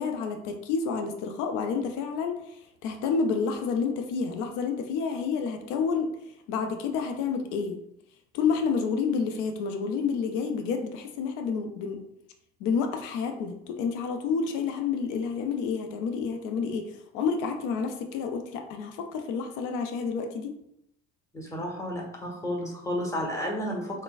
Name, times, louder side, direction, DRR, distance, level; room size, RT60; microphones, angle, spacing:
voice 1, 0.0-6.1 6.5-7.8 8.3-12.0 12.6-20.5, left 5 dB, 60° left, 5 dB, 0.5 m, -29 dB
voice 2, 21.3-24.0, equal, 10° left, -2 dB, 1.1 m, -32 dB
3.8 x 2.1 x 2.3 m, 0.78 s
hypercardioid pair, 55°, 34 cm